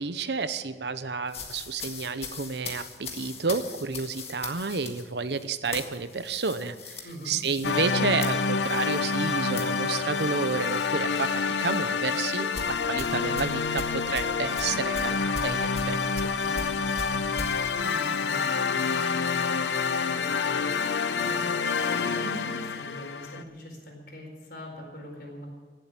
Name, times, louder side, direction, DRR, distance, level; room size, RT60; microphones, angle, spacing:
voice 1, 0.0-16.3, right 4 dB, 75° right, 12 dB, 0.8 m, -31 dB
sound 1, 1.3-10.9 11.2-11.5 12.5-17.5, left 4 dB, 35° left, 1.7 m, -40 dB
voice 2, 7.0-7.4 16.4-21.5 21.8-25.5, equal, 60° left, 0 dB, 4.4 m, -42 dB
sound 2, 7.6-23.4, left 5 dB, 85° left, 0.7 m, -28 dB
17.0 x 7.9 x 8.7 m, 1.4 s
head